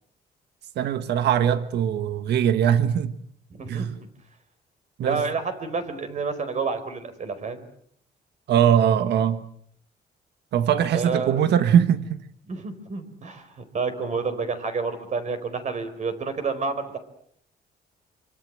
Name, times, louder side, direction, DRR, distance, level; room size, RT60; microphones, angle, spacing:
voice 1, 0.8-3.1 3.7-4.0 5.0-5.2 8.5-9.4 10.5-12.2, right 9 dB, 80° right, 1.6 m, -21 dB
voice 2, 3.5-3.9 5.0-7.6 10.9-11.5 12.4-17.0, right 4 dB, 45° right, 4.8 m, -29 dB
26.5 x 25.0 x 7.7 m
cardioid pair, 130°, 17 cm